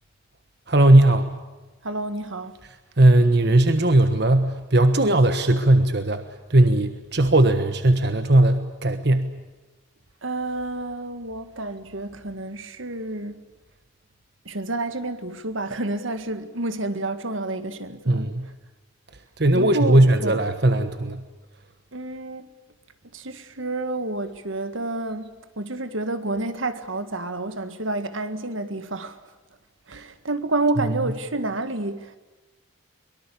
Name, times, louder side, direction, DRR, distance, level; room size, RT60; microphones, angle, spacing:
voice 1, 0.7-1.3 3.0-6.2 6.5-9.3 18.1-18.5 19.4-21.2, right 1 dB, 55° right, 1.3 m, -18 dB
voice 2, 1.8-2.6 10.2-13.5 14.5-18.5 19.5-20.4 21.9-22.5 23.1-25.3 25.6-29.2 29.9-32.2, right 2 dB, 75° right, 1.8 m, -29 dB
23.5 x 23.0 x 8.5 m
head